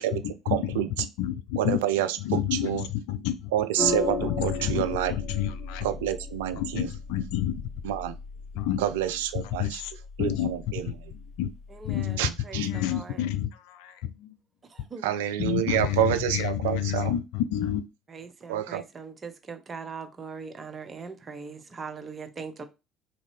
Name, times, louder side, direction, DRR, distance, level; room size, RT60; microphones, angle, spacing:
voice 1, 0.0-3.5 4.2-5.9 6.5-7.6 8.5-9.9 10.2-10.5 10.8-11.5 11.8-12.2 12.5-14.4 15.4-17.9, left 11 dB, 70° left, 0.3 m, -30 dB
voice 2, 0.5-0.9 1.6-2.9 3.5-5.1 5.8-6.9 7.8-8.1 8.8-9.8 10.2-10.8 12.2-12.7 15.0-17.1 18.5-18.8, right 11 dB, 75° right, 0.3 m, -28 dB
sound 1, 3.8-12.3, left 3 dB, 10° left, 2.1 m, -36 dB
voice 3, 11.7-13.2 14.7-15.1 18.1-22.6, right 5 dB, 30° right, 0.7 m, -41 dB
3.6 x 2.6 x 3.2 m
hypercardioid pair, 60°, 0 cm